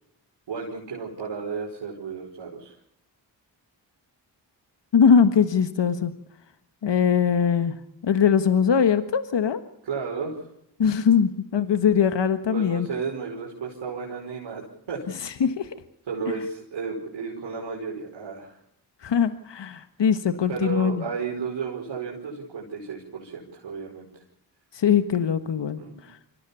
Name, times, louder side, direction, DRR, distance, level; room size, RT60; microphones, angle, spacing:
voice 1, 0.5-2.7 9.8-10.4 12.5-15.1 16.1-18.6 20.5-24.2 25.8-26.0, right 5 dB, 85° right, -3 dB, 5.1 m, -33 dB
voice 2, 4.9-6.1 6.8-7.8 8.0-9.6 10.8-12.9 15.2-15.7 19.0-21.0 24.7-25.8 26.1-26.2, left 7 dB, 70° left, 10 dB, 1.5 m, -21 dB
25.0 x 17.0 x 7.0 m, 0.76 s
cardioid pair, 45°, 45 cm